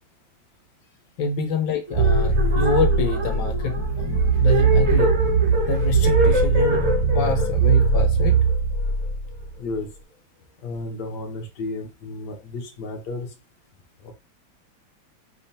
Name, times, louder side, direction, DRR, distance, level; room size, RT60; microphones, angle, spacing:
voice 1, 1.2-5.1 5.7-8.4, left 5 dB, 85° left, 5 dB, 1.6 m, -27 dB
sound 1, 1.9-9.4, right 5 dB, 5° left, 1.3 m, -20 dB
sound 2, 1.9-9.1, equal, 55° right, 1.0 m, -26 dB
voice 2, 9.6-9.9 10.6-13.3 14.0-14.1, left 2 dB, 60° left, 3 dB, 1.6 m, -32 dB
5.6 x 3.4 x 2.8 m, 0.29 s
omnidirectional pair, 2.1 m